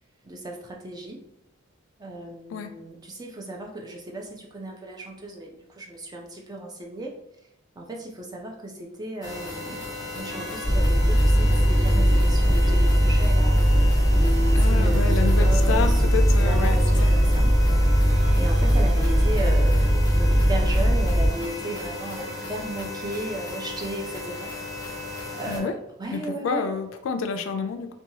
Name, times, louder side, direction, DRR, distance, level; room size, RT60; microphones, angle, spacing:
voice 1, 0.2-1.2 2.0-7.1 7.8-13.9 14.6-17.6 18.4-24.5 25.3-25.7 26.0-26.7, right 2 dB, 20° right, 0 dB, 0.4 m, -35 dB
sound 1, 9.2-25.6, left 2 dB, 20° left, 0.7 m, -36 dB
sound 2, 10.3-22.9, right 1 dB, 35° right, 1.0 m, -40 dB
sound 3, 10.6-21.3, equal, 55° right, 1.4 m, -19 dB
voice 2, 14.5-17.1 25.4-25.7 26.1-27.9, left 5 dB, 70° left, 8 dB, 0.3 m, -29 dB
2.7 x 2.2 x 2.7 m, 0.78 s
head